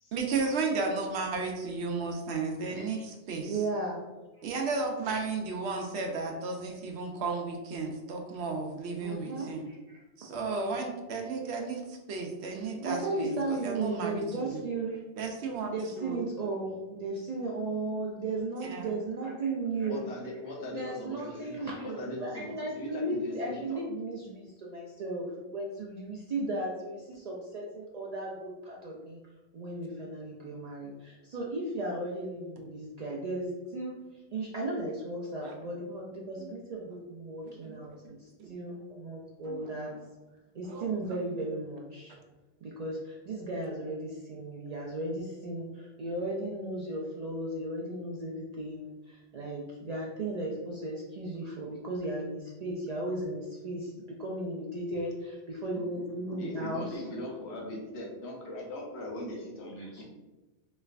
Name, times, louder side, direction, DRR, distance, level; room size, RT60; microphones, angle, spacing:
voice 1, 0.1-3.5 4.4-9.6 10.2-14.2 14.5-14.6 15.2-16.2 18.6-18.9 35.4-35.5 36.4-36.5 37.4-37.9 38.4-38.5 39.4-40.0 40.6-41.2, right 4 dB, 80° right, 2 dB, 0.9 m, -34 dB
voice 2, 3.5-4.1 9.0-10.0 12.8-15.0 15.7-20.1 20.7-29.2 29.5-33.9 34.3-39.9 40.5-42.1 42.6-53.9 54.2-57.0 59.8-60.0, right 2 dB, 55° right, -3 dB, 0.4 m, -35 dB
voice 3, 19.9-21.6 21.8-23.8 56.4-60.0, left 1 dB, 75° left, -1 dB, 1.0 m, -40 dB
3.2 x 3.2 x 2.4 m, 1.1 s
omnidirectional pair, 1.1 m